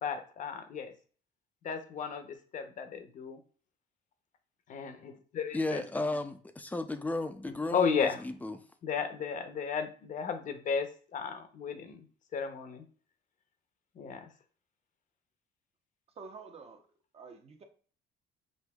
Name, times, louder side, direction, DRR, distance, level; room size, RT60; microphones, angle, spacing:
voice 1, 0.0-0.9 1.6-3.4 4.7-5.8 7.7-8.2 8.8-12.0 12.3-12.8 13.9-14.3, left 6 dB, 50° left, 0.8 m, -34 dB
voice 2, 5.5-8.6, left 2 dB, 10° left, 0.5 m, -34 dB
voice 3, 16.1-16.9 17.1-17.6, right 4 dB, 35° right, 0.8 m, -48 dB
6.4 x 2.6 x 2.3 m
cardioid pair, 110°, 17 cm